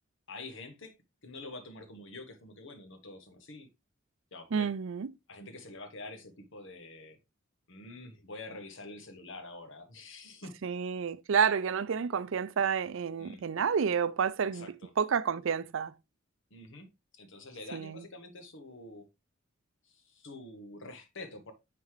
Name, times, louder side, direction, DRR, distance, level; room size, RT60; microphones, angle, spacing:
voice 1, 0.3-0.9 1.2-3.7 4.3-4.7 5.3-7.2 7.7-10.5 13.2-13.4 14.4-14.9 16.5-16.9 17.2-19.1 19.8-21.5, left 2 dB, 65° left, 1.3 m, -46 dB
voice 2, 4.5-5.1 10.6-14.7 15.0-15.9 17.7-18.0, right 6 dB, 65° right, 0.5 m, -30 dB
9.5 x 4.2 x 3.2 m
head